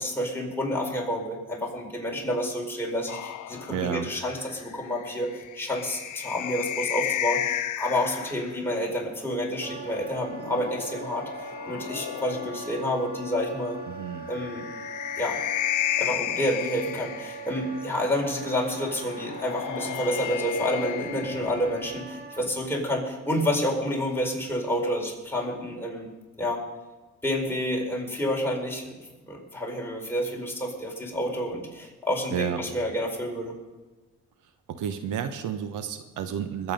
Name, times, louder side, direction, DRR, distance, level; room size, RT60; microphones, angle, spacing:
voice 1, 0.0-13.8 14.3-14.7 15.2-15.4 16.0-26.1 26.4-26.6 27.2-29.0 29.3-33.5, equal, 10° left, -1 dB, 4.3 m, -29 dB
sound 1, 3.1-8.6 10.0-13.0 14.3-17.8 19.1-22.0, left 12 dB, 80° left, 1.0 m, -33 dB
voice 2, 3.7-4.1 13.9-14.3 32.3-32.6 34.7-36.7, right 8 dB, 85° right, 9 dB, 1.1 m, -31 dB
Wind instrument woodwind instrument, 9.6-22.5, right 3 dB, 30° right, 2.1 m, -40 dB
20.5 x 8.5 x 5.4 m, 1.2 s
cardioid pair, 90°, 30 cm